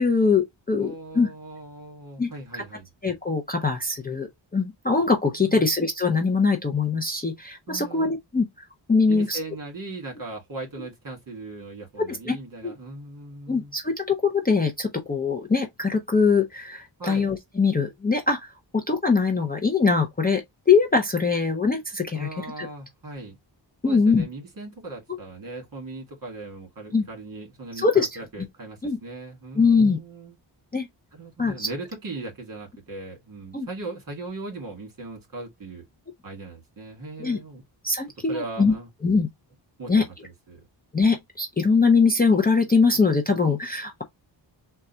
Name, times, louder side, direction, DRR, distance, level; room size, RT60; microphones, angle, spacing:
voice 1, 0.0-1.3 2.2-2.6 3.0-9.4 12.0-12.4 12.6-12.7 13.5-22.7 23.8-24.2 26.9-27.0 27.8-28.2 28.8-29.0 29.6-30.0 30.7-30.9 31.4-31.7 33.5-33.7 37.2-37.4 37.8-38.7 39.0-39.3 39.9-40.1 40.9-44.0, left 4 dB, 20° left, 0.5 m, -22 dB
voice 2, 0.8-2.9 5.4-5.6 7.7-8.1 9.1-13.7 17.0-17.3 22.1-23.4 23.8-30.4 31.1-35.8 36.2-37.6 38.3-38.9 39.8-40.6, right 2 dB, 45° right, 2.2 m, -38 dB
3.7 x 2.4 x 4.3 m
wide cardioid pair, 165°, 46 cm